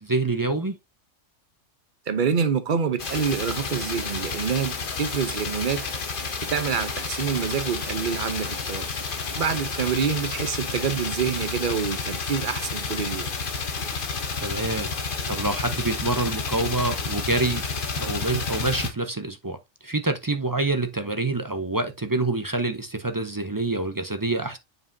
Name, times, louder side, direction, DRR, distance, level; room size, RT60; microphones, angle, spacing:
voice 1, 0.0-0.8 14.4-14.9 15.3-17.6 17.9-19.6 19.8-24.6, right 2 dB, 25° right, 0.4 m, -26 dB
voice 2, 2.1-5.9 6.5-8.9 9.4-13.3, right 6 dB, 45° right, 0.9 m, -27 dB
sound 1, 3.0-18.9, left 4 dB, 45° left, 1.1 m, -30 dB
7.3 x 5.3 x 2.6 m
omnidirectional pair, 1.3 m